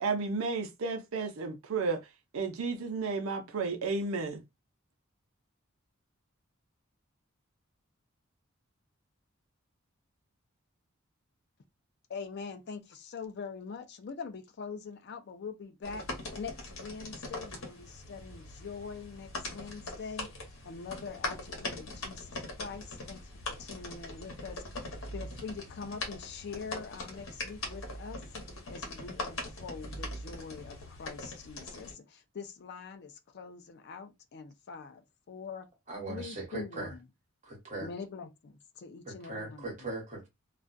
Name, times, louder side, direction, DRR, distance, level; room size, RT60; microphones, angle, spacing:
voice 1, 0.0-2.0 2.3-4.4, right 4 dB, 80° right, 0.5 m, -32 dB
voice 2, 12.1-16.0 16.3-20.3 20.6-24.8 25.1-28.2 28.7-35.7 36.1-37.0 37.8-39.7, left 5 dB, 50° left, 0.4 m, -43 dB
sound 1, 15.8-31.9, left 2 dB, 65° left, 0.9 m, -41 dB
voice 3, 35.9-36.9 37.4-37.9 39.0-40.3, right 2 dB, 35° right, 1.1 m, -39 dB
2.3 x 2.1 x 2.5 m
head